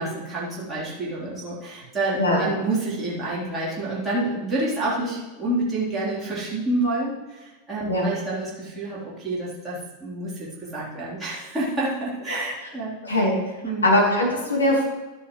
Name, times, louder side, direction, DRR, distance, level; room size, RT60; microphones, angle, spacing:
voice 1, 0.0-12.9 13.6-13.9, right 2 dB, 15° right, -8 dB, 3.8 m, -28 dB
voice 2, 13.0-13.3 13.8-14.8, left 1 dB, 75° left, -3 dB, 3.1 m, -20 dB
12.0 x 10.0 x 3.2 m, 1.2 s
figure-of-eight pair, 90°, 0 cm